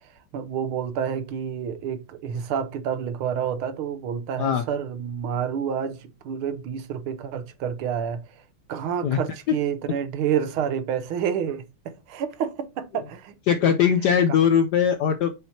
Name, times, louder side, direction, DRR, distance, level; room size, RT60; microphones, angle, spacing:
voice 1, 0.3-8.2 8.7-13.3 14.3-14.4, right 8 dB, 75° right, 1.7 m, -29 dB
voice 2, 13.5-15.3, left 8 dB, 80° left, 0.9 m, -20 dB
8.7 x 6.1 x 2.8 m
omnidirectional pair, 2.4 m